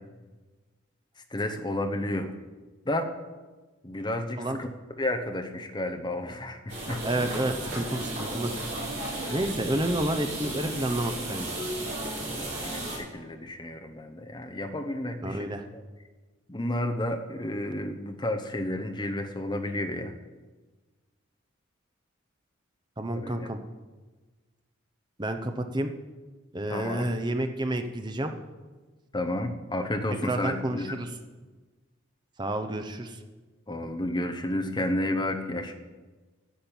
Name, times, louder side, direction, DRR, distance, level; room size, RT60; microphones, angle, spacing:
voice 1, 1.3-2.3 2.9-3.1 3.8-4.7 5.0-7.0 9.1-9.4 12.6-15.5 15.7-15.8 16.5-20.1 23.1-23.5 26.7-27.1 29.1-31.0 33.7-35.7, left 1 dB, 20° left, 5 dB, 0.9 m, -31 dB
sound 1, 6.7-13.0, right 1 dB, 50° right, 4.6 m, -34 dB
voice 2, 7.0-8.5 9.3-11.5 15.2-15.6 23.0-23.6 25.2-25.9 26.5-28.3 30.2-31.1 32.4-33.2, right 1 dB, 20° right, 7 dB, 0.8 m, -30 dB
10.0 x 8.5 x 7.2 m, 1.3 s
head